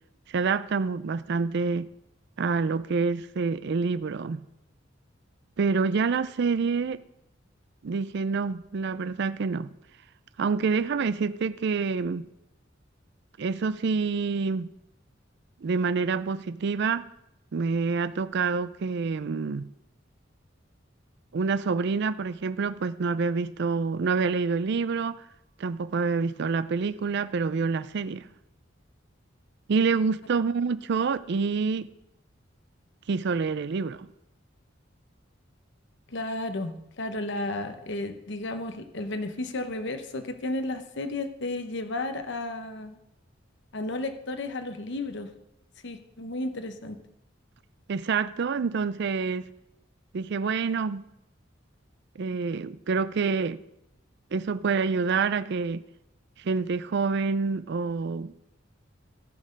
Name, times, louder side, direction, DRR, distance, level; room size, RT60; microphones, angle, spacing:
voice 1, 0.3-1.9 2.4-4.4 5.6-7.0 7.8-9.7 10.4-12.3 13.4-14.7 15.6-17.1 17.5-19.7 21.3-25.1 25.6-28.3 29.7-31.9 33.1-34.1 47.9-49.5 50.1-51.0 52.2-53.6 54.3-55.8 56.4-58.3, right 4 dB, 60° right, 14 dB, 0.4 m, -27 dB
voice 2, 36.1-43.0 43.7-45.3 45.8-47.0, left 2 dB, 65° left, 8 dB, 1.0 m, -33 dB
14.5 x 6.5 x 5.2 m, 0.83 s
head